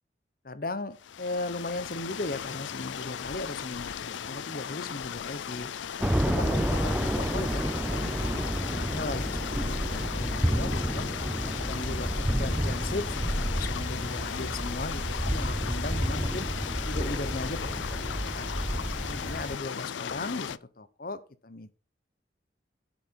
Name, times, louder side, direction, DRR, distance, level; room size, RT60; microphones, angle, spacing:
voice 1, 0.4-5.7 6.2-8.4 8.7-11.1 11.6-16.5 16.8-18.5 19.0-21.7, left 2 dB, 50° left, 14 dB, 1.0 m, -37 dB
sound 1, 1.0-20.6, left 8 dB, 85° left, 0.4 m, -36 dB
sound 2, 2.3-9.1, right 2 dB, 30° right, 2.6 m, -59 dB
sound 3, 6.0-19.6, equal, 5° right, 0.4 m, -30 dB
10.5 x 7.5 x 4.6 m, 0.36 s
head